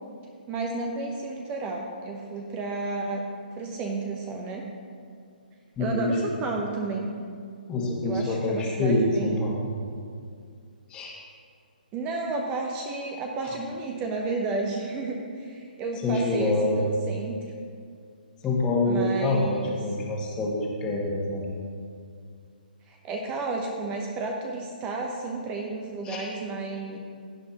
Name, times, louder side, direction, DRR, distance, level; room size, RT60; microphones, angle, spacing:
voice 1, 0.5-3.2 3.6-4.7 5.8-7.1 8.0-9.6 11.9-17.4 18.9-19.7 22.9-27.0, right 3 dB, 20° right, 1 dB, 0.8 m, -32 dB
voice 2, 5.8-6.3 7.7-9.6 10.9-11.2 16.0-16.9 18.4-21.5 26.0-26.3, left 2 dB, 15° left, -2 dB, 1.6 m, -26 dB
16.0 x 8.5 x 3.0 m, 2.2 s
hypercardioid pair, 145°, 5 cm